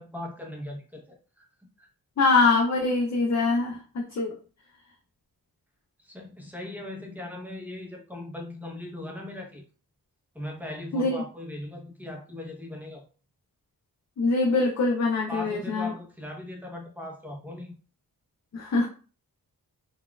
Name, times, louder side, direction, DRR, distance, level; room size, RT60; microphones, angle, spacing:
voice 1, 0.0-1.5 1.8-1.9 6.0-9.6 10.3-13.0 15.3-17.8, left 1 dB, 5° right, 0 dB, 0.7 m, -39 dB
voice 2, 2.2-4.3 10.9-11.2 14.2-15.9 18.5-18.9, left 3 dB, 45° left, 1 dB, 0.5 m, -23 dB
4.0 x 2.3 x 2.2 m, 0.38 s
wide cardioid pair, 150°, 38 cm